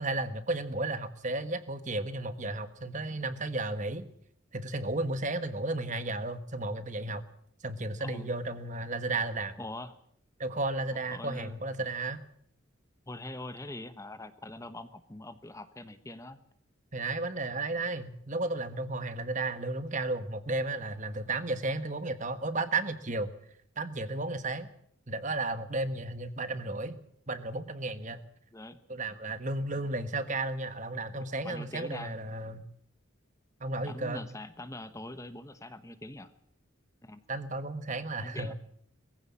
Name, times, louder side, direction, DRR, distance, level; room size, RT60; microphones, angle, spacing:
voice 1, 0.0-4.0 4.5-7.2 7.6-9.6 10.4-12.2 16.9-23.3 23.8-24.7 25.1-27.0 27.3-28.2 28.9-32.7 33.6-34.2 37.3-38.5, right 2 dB, 40° right, 11 dB, 1.4 m, -33 dB
voice 2, 8.0-8.3 9.6-10.0 11.1-11.6 13.1-16.4 28.5-28.8 29.8-29.9 31.4-32.1 33.8-36.3 37.0-37.2 38.2-38.5, left 1 dB, 15° left, 11 dB, 1.0 m, -43 dB
22.0 x 15.5 x 8.5 m, 0.67 s
head